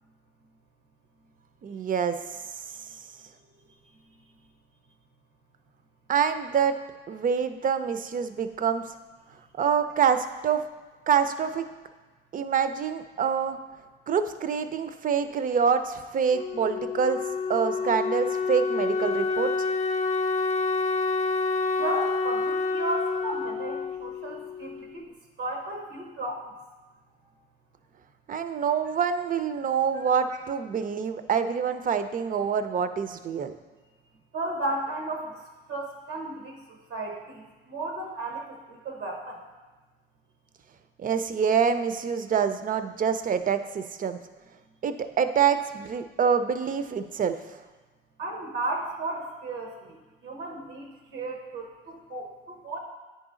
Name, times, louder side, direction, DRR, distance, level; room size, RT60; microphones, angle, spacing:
voice 1, 1.6-2.2 6.1-6.8 7.1-8.8 9.5-10.6 11.1-11.7 12.3-13.6 14.1-17.2 17.5-19.5 28.3-33.5 41.0-44.2 44.8-47.4, right 7 dB, 45° right, 10 dB, 0.5 m, -26 dB
Wind instrument woodwind instrument, 16.3-25.0, left 4 dB, 35° left, 0.5 m, -28 dB
voice 2, 21.8-25.1 25.4-26.4 27.1-27.2 29.9-30.1 34.3-35.4 35.7-39.4 48.2-50.0 50.2-50.9 51.1-52.8, right 2 dB, 90° right, 1 dB, 0.9 m, -34 dB
9.4 x 4.0 x 3.7 m, 1.3 s
cardioid pair, 90°, 20 cm